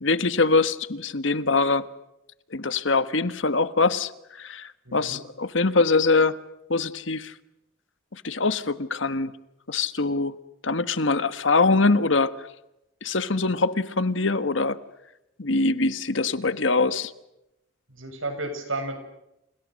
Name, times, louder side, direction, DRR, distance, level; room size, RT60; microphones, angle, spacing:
voice 1, 0.0-1.9 2.5-6.4 6.7-7.3 8.1-9.3 9.7-10.3 10.6-12.3 13.0-14.8 15.4-17.1, left 3 dB, 75° left, 12 dB, 1.4 m, -23 dB
voice 2, 4.8-5.2 17.9-19.0, right 2 dB, 85° right, 7 dB, 7.4 m, -32 dB
30.0 x 29.5 x 6.5 m, 0.87 s
head